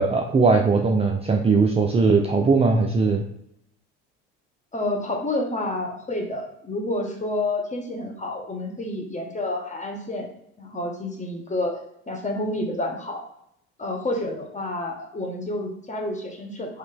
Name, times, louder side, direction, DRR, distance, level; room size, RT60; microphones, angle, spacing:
voice 1, 0.0-3.2, right 4 dB, 15° right, 1 dB, 0.5 m, -19 dB
voice 2, 4.7-10.3 10.6-11.7 12.1-13.2 13.8-16.8, left 1 dB, 20° left, 2 dB, 1.1 m, -29 dB
4.0 x 2.9 x 3.4 m, 0.75 s
hypercardioid pair, 75°, 35 cm